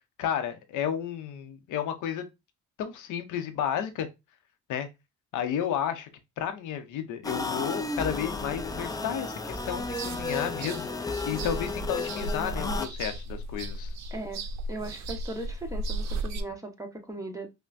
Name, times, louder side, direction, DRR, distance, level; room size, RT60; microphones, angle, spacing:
voice 1, 0.2-2.3 2.8-4.1 4.7-4.9 5.3-6.1 6.4-10.9 11.2-13.9, left 9 dB, 90° left, 0.8 m, -32 dB
sound 1, 7.2-12.9, left 3 dB, 10° left, 0.4 m, -33 dB
sound 2, 9.6-16.4, right 2 dB, 65° right, 0.6 m, -36 dB
voice 2, 14.1-17.5, right 2 dB, 10° right, 1.1 m, -38 dB
5.6 x 2.2 x 2.4 m
cardioid pair, 90°, 30 cm